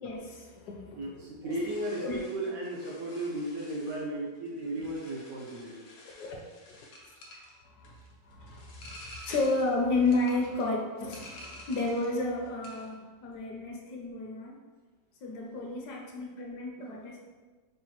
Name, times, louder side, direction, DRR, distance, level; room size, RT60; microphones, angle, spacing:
voice 1, 0.0-1.0 1.4-1.6 2.0-2.2 6.2-6.4 6.7-6.8 7.6-8.0 8.2-8.9 9.3-14.6 15.2-17.2, left 2 dB, 70° left, 0 dB, 1.0 m, -32 dB
voice 2, 1.0-5.9, right 1 dB, 70° right, -4 dB, 0.9 m, -35 dB
sound 1, 1.5-12.2 12.5-13.0, left 1 dB, 90° left, 1.4 m, -51 dB
5.0 x 2.1 x 2.8 m, 1.3 s
omnidirectional pair, 1.9 m